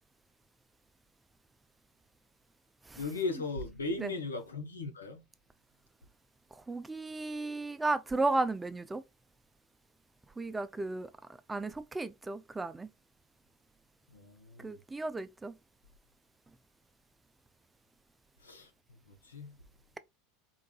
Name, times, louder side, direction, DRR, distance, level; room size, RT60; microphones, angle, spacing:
voice 1, 3.0-5.2 14.1-14.8 18.4-18.7 19.1-19.6, left 3 dB, 85° left, 1.0 m, -37 dB
voice 2, 6.7-9.0 10.4-11.1 11.5-12.9 14.6-15.5, right 2 dB, 15° right, 0.4 m, -34 dB
3.8 x 3.6 x 2.3 m
figure-of-eight pair, 80°, 0 cm